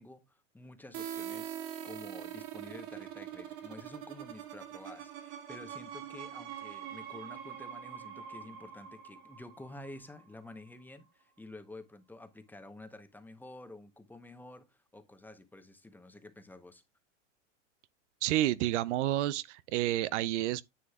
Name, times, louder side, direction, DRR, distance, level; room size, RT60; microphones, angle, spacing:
voice 1, 0.0-1.6 1.8-16.8, left 2 dB, 5° left, 0.9 m, -50 dB
sound 1, 0.9-10.5, right 10 dB, 50° right, 1.7 m, -44 dB
voice 2, 18.2-20.6, right 14 dB, 65° right, 0.5 m, -30 dB
9.9 x 7.5 x 2.3 m
hypercardioid pair, 125°, 38 cm